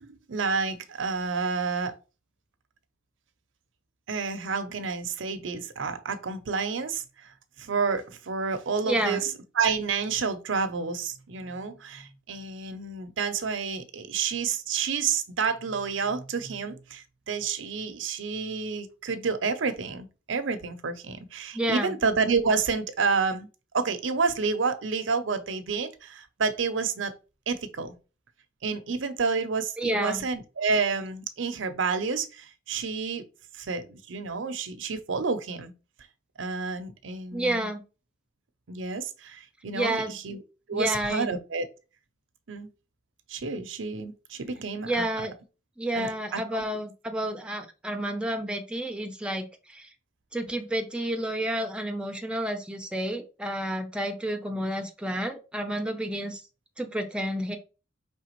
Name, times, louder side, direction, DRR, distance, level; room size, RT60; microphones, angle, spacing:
voice 1, 0.0-1.9 4.1-7.3 7.6-23.5 23.7-27.1 27.5-27.9 28.6-33.2 33.5-35.7 36.4-37.7 38.7-40.4 40.7-41.7 42.5-42.7 43.3-45.3 45.9-46.6, right 5 dB, 70° right, 0.6 m, -29 dB
voice 2, 8.8-9.2 21.5-21.9 29.8-30.2 37.3-37.8 39.7-40.2 40.7-41.3 44.8-45.3 45.8-49.9 50.3-56.4 56.8-57.6, right 1 dB, 5° right, 0.6 m, -30 dB
4.9 x 3.4 x 3.0 m
head